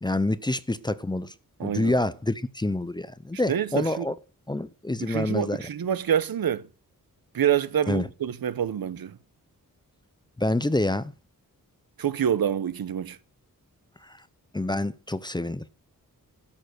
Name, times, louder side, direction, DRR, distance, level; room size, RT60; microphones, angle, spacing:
voice 1, 0.0-1.3 1.6-4.1 4.5-5.6 7.9-8.1 10.4-11.1 14.5-15.6, left 2 dB, 15° left, 0.6 m, -27 dB
voice 2, 1.6-1.9 3.5-4.1 5.0-6.7 7.3-9.2 12.0-13.2, right 9 dB, 85° right, 0.9 m, -26 dB
13.0 x 6.8 x 6.5 m
wide cardioid pair, 155°, 35 cm